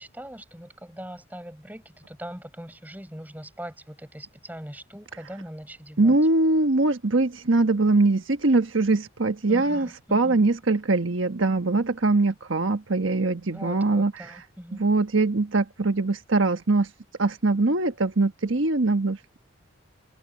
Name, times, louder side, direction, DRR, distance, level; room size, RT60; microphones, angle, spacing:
voice 1, 0.0-6.2 9.5-10.4 13.5-14.8, equal, 10° right, 7.5 m, -41 dB
voice 2, 6.0-14.4 14.7-16.9 17.2-19.4, right 2 dB, 75° right, 1.3 m, -22 dB
head